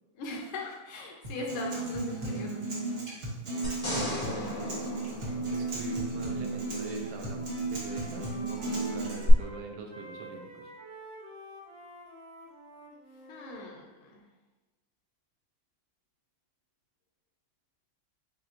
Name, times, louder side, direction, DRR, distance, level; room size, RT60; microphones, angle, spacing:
voice 1, 0.1-3.0 13.3-14.2, left 2 dB, 90° left, -1 dB, 1.7 m, -40 dB
Acoustic guitar, 1.2-9.2, right 2 dB, 45° right, 1.0 m, -34 dB
sound 1, 3.6-6.1 9.3-9.4, left 1 dB, 20° left, 1.2 m, -36 dB
voice 2, 3.8-4.9 5.5-7.4 7.7-10.6, right 3 dB, 90° right, 2 dB, 1.5 m, -43 dB
Wind instrument woodwind instrument, 6.4-6.8 7.1-13.7, equal, 30° right, 0.7 m, -49 dB
7.2 x 2.5 x 2.6 m, 1.1 s
omnidirectional pair, 2.2 m